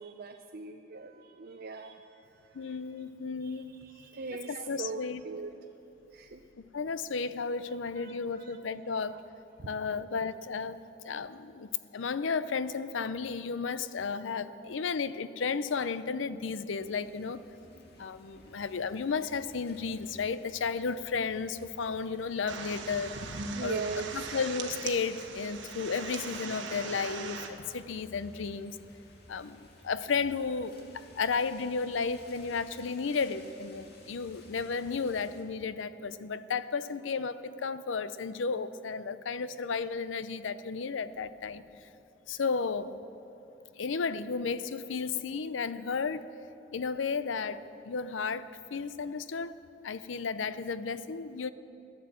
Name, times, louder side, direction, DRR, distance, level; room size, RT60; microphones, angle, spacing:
voice 1, 0.0-2.0 2.6-2.7 3.4-5.5 6.1-6.4 7.7-8.4 9.6-9.7 14.6-14.7 23.5-24.1, right 4 dB, 55° right, 4 dB, 0.6 m, -40 dB
voice 2, 2.5-3.8 4.5-5.2 6.7-9.2 9.7-17.4 18.0-23.8 24.1-28.8 29.3-41.6 42.3-43.0 43.8-46.3 46.7-47.6 47.8-49.5 49.8-51.5, left 5 dB, 85° left, 14 dB, 0.5 m, -33 dB
sound 1, 16.8-35.4, left 1 dB, 60° left, 2.1 m, -57 dB
sound 2, 22.5-27.5, right 4 dB, 80° right, 1.3 m, -40 dB
Piano, 26.6-27.4, right 1 dB, 25° right, 2.7 m, -54 dB
14.5 x 10.5 x 7.5 m, 2.9 s
head